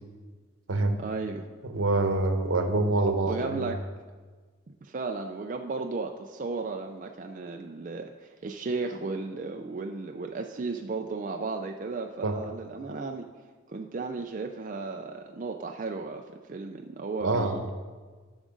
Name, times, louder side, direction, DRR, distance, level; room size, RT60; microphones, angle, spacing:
voice 1, 1.0-1.4 3.3-3.8 4.8-13.3 13.7-16.2 16.5-17.6, right 3 dB, 40° right, 3 dB, 0.4 m, -34 dB
voice 2, 1.6-3.7 12.2-12.4 17.2-17.6, right 2 dB, 80° right, 6 dB, 0.9 m, -26 dB
13.5 x 6.2 x 3.8 m, 1.4 s
head